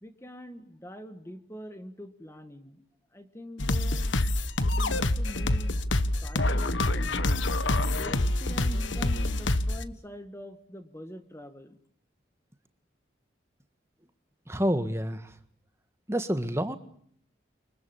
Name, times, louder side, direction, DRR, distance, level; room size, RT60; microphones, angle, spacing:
voice 1, 0.0-2.8 3.1-4.1 4.7-5.8 6.2-7.3 8.0-11.8, equal, 15° left, 8 dB, 1.8 m, -44 dB
sound 1, 3.6-9.8, left 2 dB, 75° left, 1.3 m, -26 dB
voice 2, 14.5-15.3 16.1-16.8, equal, 15° right, 9 dB, 1.7 m, -28 dB
29.5 x 24.5 x 7.3 m, 0.65 s
head